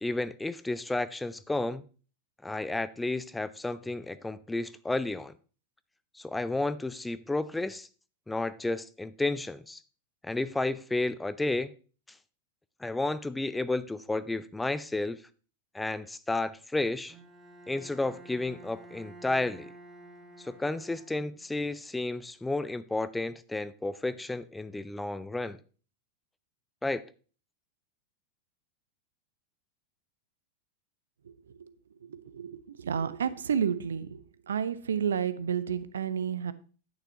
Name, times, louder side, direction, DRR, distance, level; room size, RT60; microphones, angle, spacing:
voice 1, 0.0-1.8 2.4-5.3 6.1-7.9 8.3-9.8 10.2-11.7 12.8-15.2 15.7-17.1 17.7-19.7 20.4-25.6 26.8-27.0, left 2 dB, 5° left, 0.4 m, -32 dB
Bowed string instrument, 17.1-21.6, right 1 dB, 15° right, 1.4 m, -51 dB
voice 2, 32.8-34.2 34.5-36.5, right 7 dB, 65° right, 0.6 m, -30 dB
10.5 x 9.1 x 2.9 m
figure-of-eight pair, 90°, 0 cm